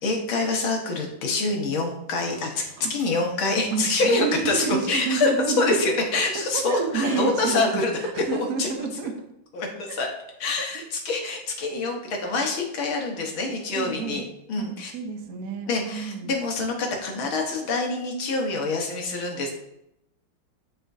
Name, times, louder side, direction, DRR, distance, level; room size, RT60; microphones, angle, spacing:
voice 1, 0.0-2.6 2.9-5.3 5.6-8.0 8.3-8.9 9.5-10.1 10.4-14.2 14.5-14.9 15.7-19.5, left 3 dB, 75° left, 1 dB, 2.0 m, -26 dB
sound 1, 2.1-7.5, right 1 dB, 35° right, 2.1 m, -41 dB
voice 2, 3.7-9.1 9.9-10.0 13.8-14.2 14.6-14.7 14.9-16.3, right 5 dB, 55° right, 5 dB, 1.1 m, -29 dB
9.9 x 5.0 x 2.7 m, 0.84 s
omnidirectional pair, 2.3 m